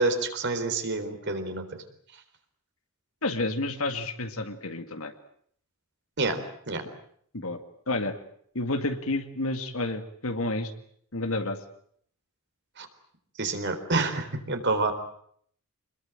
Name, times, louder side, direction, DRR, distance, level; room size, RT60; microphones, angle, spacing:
voice 1, 0.0-1.7 6.2-6.4 6.7-6.8 12.8-12.9 13.4-14.9, right 3 dB, 55° right, 7 dB, 3.9 m, -27 dB
voice 2, 3.2-5.1 7.3-7.6 7.9-8.2 8.5-10.7 11.1-11.6, left 2 dB, 70° left, 7 dB, 2.1 m, -30 dB
26.5 x 21.5 x 8.9 m, 0.64 s
head